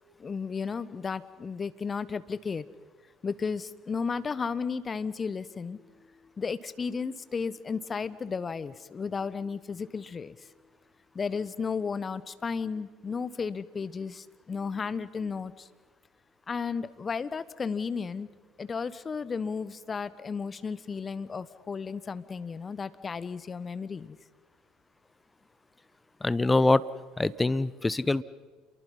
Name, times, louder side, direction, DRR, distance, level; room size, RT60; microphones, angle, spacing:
voice 1, 0.2-2.6 3.2-10.5 11.1-15.7 16.5-18.3 18.6-24.2, left 5 dB, 30° left, 16 dB, 1.1 m, -34 dB
voice 2, 26.2-26.9 27.2-28.2, left 2 dB, 15° left, 18 dB, 0.8 m, -24 dB
29.0 x 23.5 x 5.5 m, 1.4 s
hypercardioid pair, 60°, 0 cm